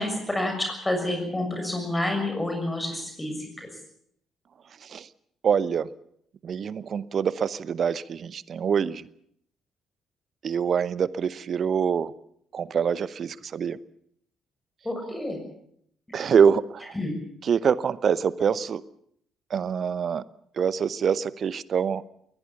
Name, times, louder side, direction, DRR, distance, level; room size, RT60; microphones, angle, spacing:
voice 1, 0.0-3.7 14.8-15.4 16.9-17.1, left 1 dB, 15° left, 4 dB, 6.7 m, -29 dB
voice 2, 5.4-5.9 6.4-9.0 10.4-12.1 12.5-13.8 16.1-16.9 17.5-18.8 19.5-20.2 20.6-22.0, right 7 dB, 50° right, 19 dB, 0.8 m, -25 dB
21.5 x 19.5 x 7.2 m, 0.69 s
figure-of-eight pair, 45°, 0 cm